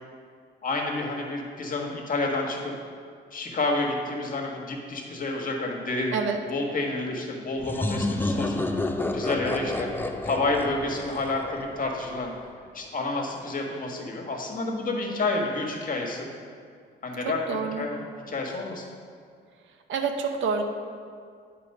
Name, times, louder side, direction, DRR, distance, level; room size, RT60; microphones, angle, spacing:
voice 1, 0.6-2.7 3.3-6.1 6.5-8.6 9.1-9.9 10.2-12.3 12.7-16.3 17.0-18.9, left 2 dB, 45° left, 0 dB, 1.4 m, -29 dB
sound 1, 7.6-12.2, left 2 dB, 10° left, 0.5 m, -30 dB
voice 2, 17.2-17.8 19.9-20.6, right 5 dB, 75° right, 5 dB, 0.8 m, -27 dB
8.3 x 4.4 x 5.4 m, 2.2 s
cardioid pair, 90°, 20 cm